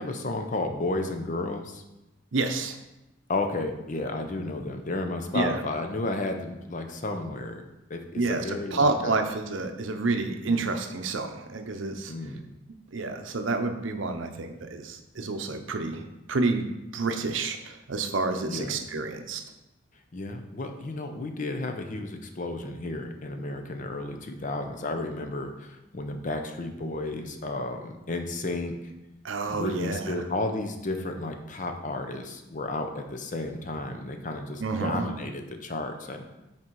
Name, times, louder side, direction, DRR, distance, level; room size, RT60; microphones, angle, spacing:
voice 1, 0.0-1.8 3.3-7.6 7.9-9.2 10.5-10.7 12.1-12.4 18.4-18.8 20.1-28.8 29.5-36.2, left 2 dB, 40° left, 6 dB, 0.6 m, -32 dB
voice 2, 2.3-2.8 5.3-5.5 8.2-12.1 12.9-16.7 16.9-19.4 29.2-30.1 34.6-35.1, right 3 dB, 75° right, 6 dB, 0.7 m, -29 dB
6.1 x 4.4 x 4.6 m, 0.97 s
head